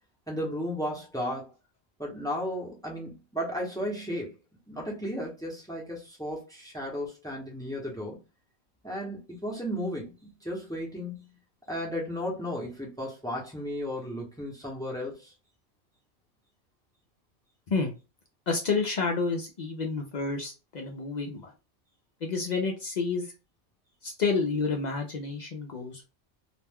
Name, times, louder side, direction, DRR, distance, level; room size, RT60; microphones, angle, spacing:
voice 1, 0.3-1.5 2.0-4.4 4.7-8.2 8.8-11.3 11.7-15.3, equal, 5° left, 0.6 m, -34 dB
voice 2, 18.5-21.5 22.2-23.3 24.0-26.0, left 4 dB, 60° left, 0.4 m, -29 dB
2.4 x 2.2 x 3.4 m
omnidirectional pair, 1.3 m